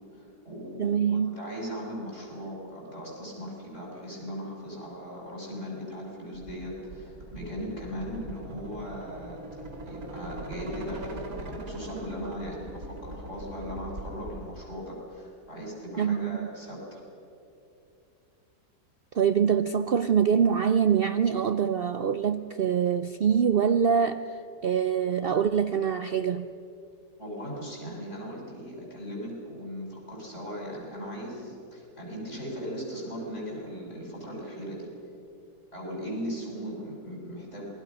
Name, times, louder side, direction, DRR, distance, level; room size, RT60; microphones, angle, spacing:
voice 1, 0.1-9.4 9.8-17.0 27.2-34.9 35.7-37.7, equal, 45° left, -3 dB, 7.9 m, -38 dB
voice 2, 0.8-1.3 16.0-16.4 19.1-24.2 24.6-26.5, right 7 dB, 80° right, 10 dB, 0.5 m, -24 dB
sound 1, 6.3-14.5, right 1 dB, 60° right, 3.1 m, -41 dB
27.0 x 21.0 x 6.3 m, 2.7 s
omnidirectional pair, 1.7 m